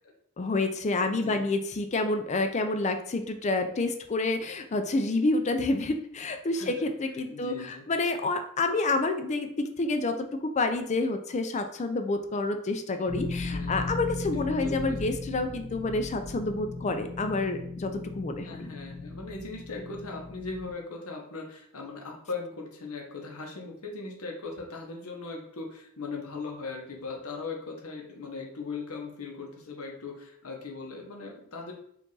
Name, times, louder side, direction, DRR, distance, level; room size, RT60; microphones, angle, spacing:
voice 1, 0.4-18.7, left 2 dB, 30° left, 7 dB, 0.4 m, -28 dB
voice 2, 6.5-6.8 7.3-7.8 13.5-14.0 14.5-15.2 18.4-31.7, left 4 dB, 85° left, 1 dB, 1.0 m, -39 dB
sound 1, 13.1-20.7, left 3 dB, 35° right, 1.1 m, -37 dB
4.6 x 2.5 x 3.9 m, 0.67 s
head